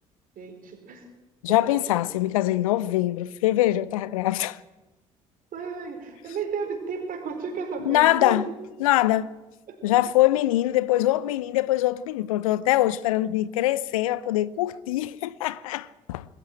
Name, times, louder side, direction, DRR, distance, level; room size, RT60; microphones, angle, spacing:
voice 1, 0.4-1.0 5.5-8.5 9.7-9.8, right 5 dB, 55° right, 4.7 m, -33 dB
voice 2, 1.4-4.6 7.8-8.4 8.8-9.3 9.8-16.2, left 15 dB, 75° left, 0.6 m, -23 dB
20.5 x 14.5 x 9.1 m
figure-of-eight pair, 50°, 18 cm